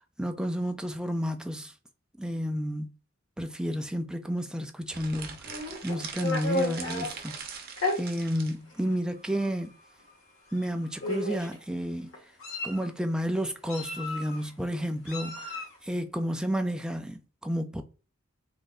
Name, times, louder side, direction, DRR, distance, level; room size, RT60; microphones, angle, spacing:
voice 1, 0.0-1.7 2.2-2.9 3.4-5.5 5.8-7.5 8.0-9.8 10.5-12.1 12.6-17.8, equal, 5° right, 0.4 m, -31 dB
sound 1, 4.9-8.6, right 6 dB, 50° right, 0.9 m, -42 dB
Meow, 5.4-7.1 7.8-8.0 8.8-8.9 9.3-9.5 10.5-10.6 11.0-11.5 12.1-12.9 13.7-14.4 15.1-15.8, left 2 dB, 85° left, 2.0 m, -33 dB
3.7 x 2.6 x 3.9 m
head